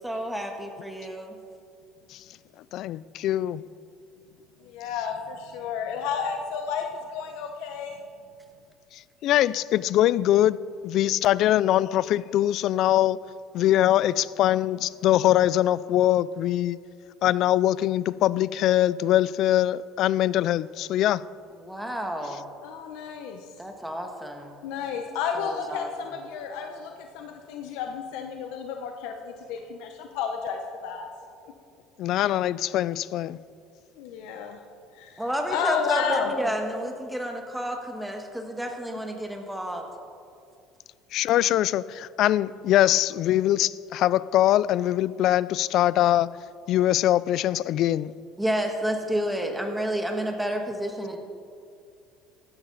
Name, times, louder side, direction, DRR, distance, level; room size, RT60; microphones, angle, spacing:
voice 1, 0.0-1.4 21.6-22.5 23.6-24.5 25.3-25.9 35.2-39.8 48.4-51.2, equal, 5° right, 1.5 m, -30 dB
voice 2, 2.7-3.6 9.2-10.6 10.8-13.2 13.5-16.8 17.2-21.3 32.0-33.4 41.1-46.3 46.7-48.1, left 13 dB, 55° left, 0.3 m, -22 dB
voice 3, 4.6-8.0 22.6-23.5 24.6-31.1 34.0-34.6 34.9-36.3, left 6 dB, 75° left, 0.9 m, -32 dB
15.5 x 12.5 x 4.0 m
cardioid pair, 130°, 0 cm